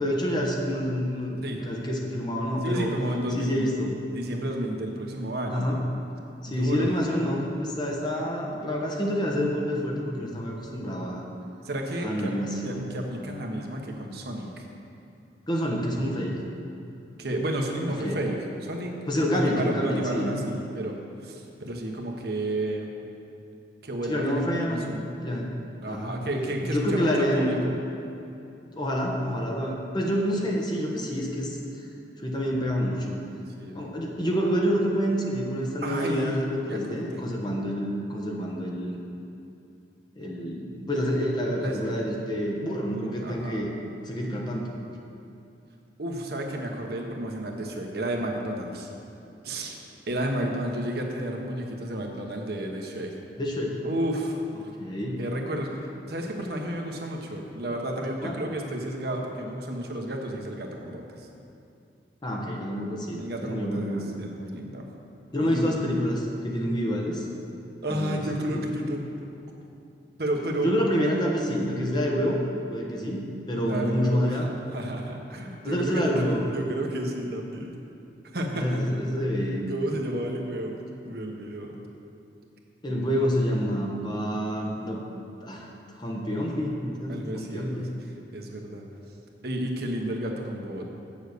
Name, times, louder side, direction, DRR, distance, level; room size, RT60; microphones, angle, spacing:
voice 1, 0.0-2.9 3.3-4.0 5.5-5.8 6.4-11.2 12.0-12.9 15.5-16.4 18.0-18.2 19.1-20.3 24.1-24.9 25.2-25.5 25.9-26.2 26.6-27.6 28.7-31.6 32.2-33.2 33.7-38.9 40.2-43.7 44.0-44.7 53.4-53.8 54.8-55.2 58.2-58.4 62.2-64.2 65.3-67.3 67.9-68.2 68.5-68.6 70.6-72.4 72.7-74.5 75.6-76.4 78.5-79.6 82.8-85.0 85.4-85.7 86.0-87.9, equal, 25° left, -1 dB, 1.1 m, -28 dB
voice 2, 2.6-3.7 4.1-5.7 6.5-6.9 11.6-12.3 12.6-14.6 17.2-18.9 19.3-22.9 23.8-25.1 25.8-27.7 33.6-33.9 35.8-37.2 41.5-41.8 43.2-43.6 46.0-48.9 49.4-49.7 50.1-53.1 53.8-54.4 55.2-61.3 63.2-64.8 65.4-65.8 67.8-69.1 70.2-70.7 73.5-76.2 76.5-77.8 78.3-78.9 79.7-81.8 82.9-83.1 87.1-87.8 88.3-88.9 89.4-90.8, right 1 dB, 60° right, 1 dB, 1.1 m, -32 dB
8.1 x 7.2 x 6.7 m, 2.7 s
head